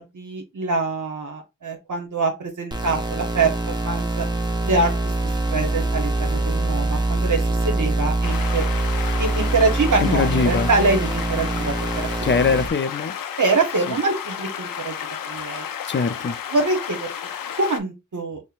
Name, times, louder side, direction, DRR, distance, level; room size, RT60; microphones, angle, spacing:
voice 1, 0.0-4.3 4.6-5.1 5.5-8.7 9.2-12.1 13.4-14.9 15.3-15.7 16.5-17.1 17.6-18.4, right 3 dB, 65° right, 0.9 m, -24 dB
sound 1, 2.7-12.7, right 2 dB, 15° right, 0.7 m, -24 dB
sound 2, 8.2-17.8, left 8 dB, 85° left, 0.5 m, -32 dB
voice 2, 10.0-10.7 12.2-13.2 13.9-14.0 15.9-16.4, left 5 dB, 35° left, 0.4 m, -22 dB
5.5 x 2.1 x 2.4 m
cardioid pair, 40°, 33 cm